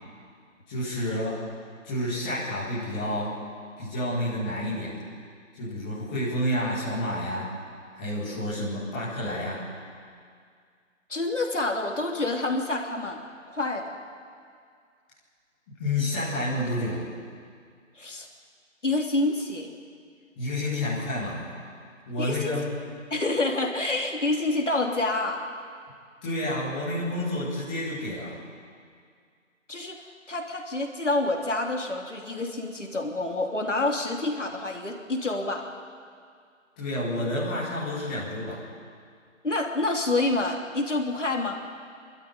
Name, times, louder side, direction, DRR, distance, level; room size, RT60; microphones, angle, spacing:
voice 1, 0.7-1.4 1.8-3.4 3.8-4.9 5.5-7.5 7.9-9.6 15.8-17.0 20.4-21.5 22.1-22.7 26.2-28.4 36.8-38.6, left 1 dB, 5° left, -10 dB, 1.9 m, -29 dB
voice 2, 11.1-14.0 18.0-18.3 18.8-19.7 22.2-22.5 23.1-25.4 29.7-30.0 30.3-35.6 39.4-41.6, left 2 dB, 65° left, 1 dB, 3.3 m, -28 dB
25.0 x 13.0 x 9.8 m, 2.1 s
figure-of-eight pair, 165°, 40 cm